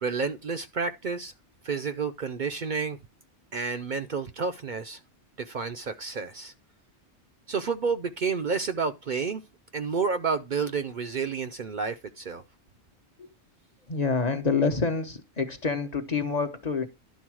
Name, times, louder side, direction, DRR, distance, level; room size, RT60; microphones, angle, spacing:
voice 1, 0.0-1.3 1.6-3.0 3.5-5.0 5.4-6.5 7.5-9.4 9.7-12.4, right 5 dB, 50° right, 0.7 m, -30 dB
voice 2, 13.9-16.9, left 4 dB, 40° left, 1.0 m, -27 dB
11.5 x 3.9 x 6.2 m
omnidirectional pair, 1.2 m